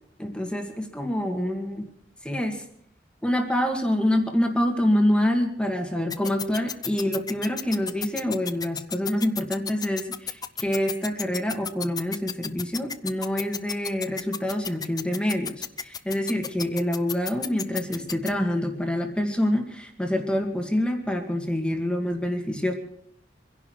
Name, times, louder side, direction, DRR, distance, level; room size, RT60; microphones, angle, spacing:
voice 1, 0.2-1.9 2.2-2.6 3.2-22.7, left 1 dB, 5° left, 3 dB, 2.1 m, -26 dB
sound 1, 6.1-18.3, left 7 dB, 20° left, 0.6 m, -32 dB
25.5 x 11.0 x 4.7 m, 0.69 s
head